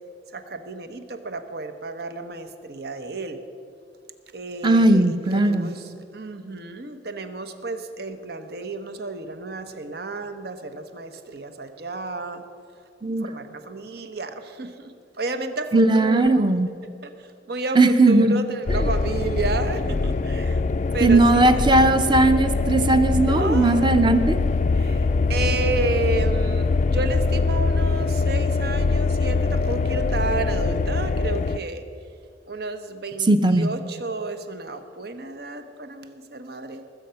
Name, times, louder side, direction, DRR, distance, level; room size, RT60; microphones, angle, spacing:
voice 1, 0.3-3.4 4.3-12.4 13.2-16.5 17.0-20.6 20.9-21.5 23.2-24.0 24.7-31.8 32.5-36.8, right 3 dB, 60° right, 8 dB, 1.0 m, -31 dB
voice 2, 4.6-5.7 13.0-13.3 15.7-16.7 17.8-18.4 21.0-24.4 33.3-33.7, right 2 dB, 25° right, 9 dB, 0.7 m, -18 dB
sound 1, 18.7-31.6, left 3 dB, 45° left, 0.4 m, -23 dB
20.5 x 7.9 x 5.7 m, 2.5 s
head